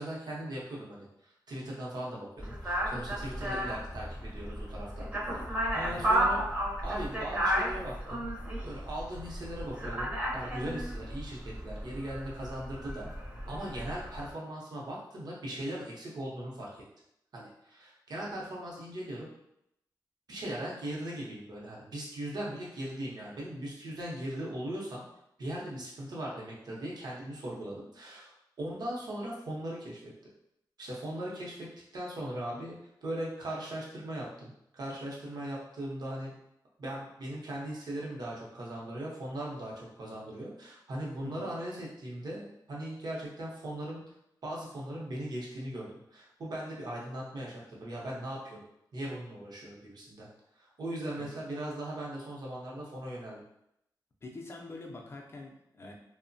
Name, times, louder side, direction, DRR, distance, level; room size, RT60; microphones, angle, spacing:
voice 1, 0.0-5.1 5.3-5.4 5.7-6.4 6.8-8.2 8.6-13.1 13.5-16.8 17.3-19.3 20.3-25.0 25.4-28.3 28.6-30.1 30.8-31.7 31.9-32.8 33.0-36.4 36.8-44.0 44.4-48.6 48.9-50.3 50.5-53.4, right 1 dB, 65° right, -4 dB, 0.7 m, -39 dB
sound 1, 2.4-14.3, right 1 dB, 20° right, 0.6 m, -33 dB
voice 2, 54.2-55.9, left 2 dB, 35° left, 1 dB, 0.4 m, -45 dB
2.9 x 2.1 x 2.6 m, 0.77 s
wide cardioid pair, 175°, 8 cm